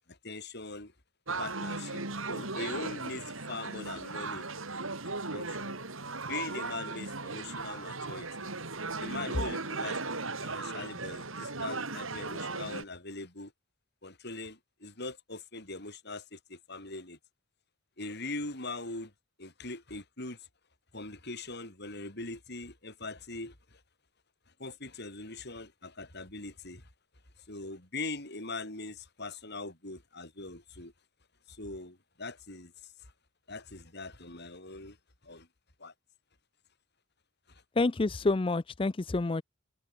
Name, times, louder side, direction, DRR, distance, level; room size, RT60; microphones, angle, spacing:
voice 1, 0.1-0.9 1.4-4.5 5.3-5.8 6.3-8.5 9.0-10.0 10.4-13.5 14.0-17.2 18.0-19.1 19.4-20.5 20.9-23.8 24.6-26.9 27.4-30.9 31.5-33.1 33.5-35.0 35.2-35.5 35.8-35.9 37.5-37.6, left 3 dB, 50° left, 6.6 m, -41 dB
sound 1, 1.3-12.8, right 3 dB, 70° right, 5.3 m, -37 dB
voice 2, 37.8-39.4, left 3 dB, 25° left, 0.4 m, -28 dB
head